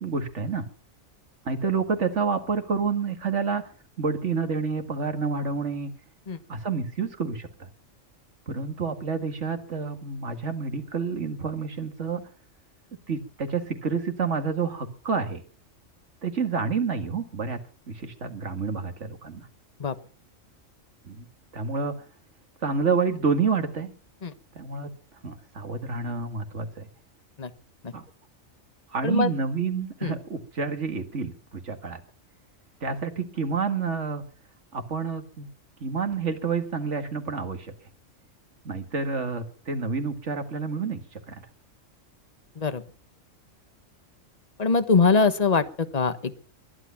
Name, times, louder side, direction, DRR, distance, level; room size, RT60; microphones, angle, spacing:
voice 1, 0.0-0.7 1.4-3.6 4.0-5.9 6.5-7.7 8.5-12.2 13.1-15.4 16.2-17.6 17.9-19.5 21.1-21.3 21.5-21.9 22.6-23.9 24.6-24.9 25.2-26.9 27.9-28.0 28.9-32.0 32.8-34.2 34.7-35.5 35.8-37.7 38.6-41.5, right 5 dB, 65° right, 7 dB, 2.3 m, -29 dB
voice 2, 44.6-46.4, left 4 dB, 30° left, 11 dB, 1.2 m, -23 dB
21.5 x 11.0 x 5.8 m, 0.42 s
omnidirectional pair, 1.4 m